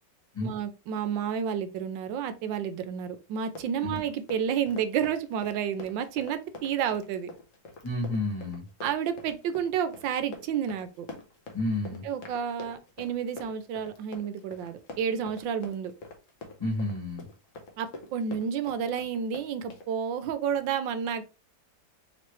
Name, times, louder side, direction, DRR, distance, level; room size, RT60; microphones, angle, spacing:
voice 1, 0.4-7.3 8.8-11.1 12.0-15.9 17.8-21.2, right 8 dB, 80° right, 10 dB, 1.3 m, -30 dB
Run, 3.4-19.9, left 2 dB, 55° left, 1.0 m, -45 dB
voice 2, 7.8-8.6 11.5-12.0 16.6-17.3, left 2 dB, 15° left, -4 dB, 1.2 m, -30 dB
4.4 x 3.1 x 3.0 m, 0.31 s
omnidirectional pair, 2.0 m